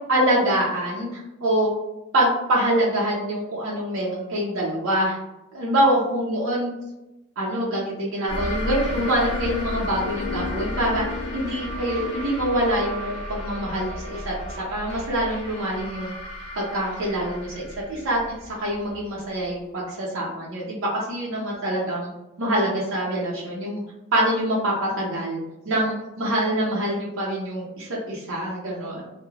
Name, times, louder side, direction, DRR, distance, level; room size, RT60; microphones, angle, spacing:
voice 1, 0.0-1.7 2.1-5.2 5.5-6.7 7.4-11.0 11.3-14.3 14.7-16.1 16.6-18.2 18.6-22.1 22.4-23.8 24.1-29.0, right 1 dB, 80° right, -5 dB, 0.6 m, -25 dB
sound 1, 8.3-19.5, left 1 dB, 30° left, 0.5 m, -33 dB
2.3 x 2.0 x 3.1 m, 0.96 s
head